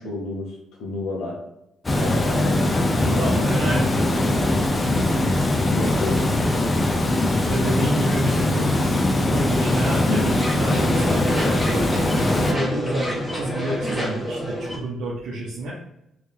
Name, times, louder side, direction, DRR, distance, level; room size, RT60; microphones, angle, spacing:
voice 1, 0.0-1.4 2.0-3.3 5.7-6.2 10.0-10.4, left 2 dB, 80° left, -4 dB, 1.1 m, -30 dB
Water, 1.8-12.5, left 1 dB, 25° left, 0.5 m, -21 dB
voice 2, 2.9-4.2 7.5-8.8 9.1-11.9 12.5-15.7, right 1 dB, 80° right, -5 dB, 0.7 m, -29 dB
sound 1, 9.5-14.8, equal, 5° left, 1.2 m, -28 dB
3.1 x 2.8 x 3.5 m, 0.83 s
cardioid pair, 90°, 0 cm